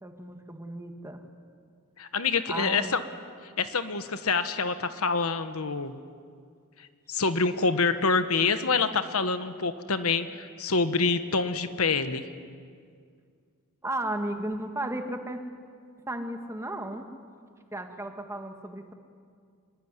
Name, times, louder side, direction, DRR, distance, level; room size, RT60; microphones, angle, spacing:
voice 1, 0.0-1.2 2.5-2.9 13.8-15.4 16.1-17.1 17.7-18.9, right 1 dB, 15° right, 5 dB, 1.9 m, -34 dB
voice 2, 2.0-3.0 3.6-6.0 7.1-12.2, left 4 dB, 75° left, 10 dB, 1.3 m, -26 dB
25.5 x 23.0 x 9.8 m, 2.2 s
head